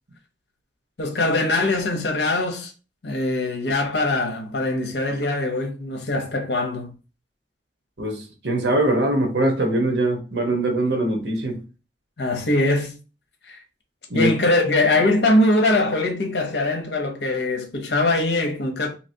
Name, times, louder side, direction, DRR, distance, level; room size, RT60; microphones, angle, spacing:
voice 1, 1.0-2.7 3.0-6.9 12.2-13.0 13.5-13.6 14.1-18.9, left 2 dB, 70° left, 0.8 m, -22 dB
voice 2, 8.0-11.6 14.1-14.3, right 1 dB, 85° right, 1.0 m, -22 dB
3.2 x 2.9 x 2.7 m
head